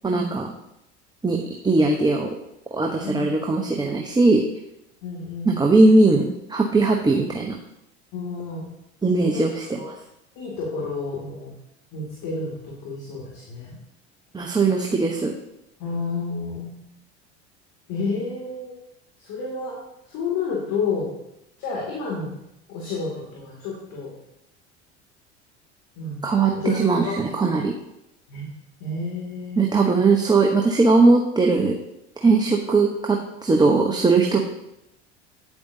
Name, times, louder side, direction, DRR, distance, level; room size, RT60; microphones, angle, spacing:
voice 1, 0.0-0.5 1.2-2.4 2.7-4.4 5.4-7.6 9.0-9.8 14.3-15.3 26.2-27.7 29.6-31.7 32.2-34.4, right 3 dB, 10° right, 1 dB, 0.9 m, -19 dB
voice 2, 3.0-3.5 5.0-5.6 8.1-8.6 9.2-9.5 9.8-9.9 10.4-11.5 11.9-13.8 15.8-16.8 17.9-18.8 19.2-21.1 21.6-22.4 22.7-24.1 26.0-27.2 28.3-28.5 28.8-29.6, left 4 dB, 60° left, -4 dB, 2.5 m, -30 dB
9.4 x 8.1 x 2.7 m, 0.85 s
hypercardioid pair, 70°, 34 cm